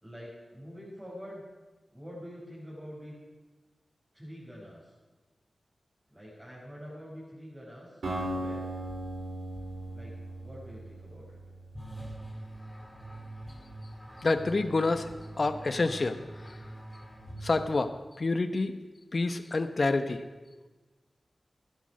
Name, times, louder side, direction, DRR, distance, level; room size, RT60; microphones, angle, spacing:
voice 1, 0.0-1.4 1.9-3.1 4.1-4.9 6.1-8.6 9.9-10.1 10.4-11.4, equal, 20° right, -8 dB, 5.4 m, -46 dB
Acoustic guitar, 8.0-12.1, right 1 dB, 80° right, 3.8 m, -37 dB
sound 1, 11.8-17.9, right 1 dB, 5° left, 2.6 m, -44 dB
voice 2, 14.2-15.1 15.4-16.2 17.4-17.9 18.2-18.7 19.1-20.2, left 3 dB, 55° left, 10 dB, 0.9 m, -27 dB
14.0 x 10.5 x 6.3 m, 1.2 s
cardioid pair, 45°, 0 cm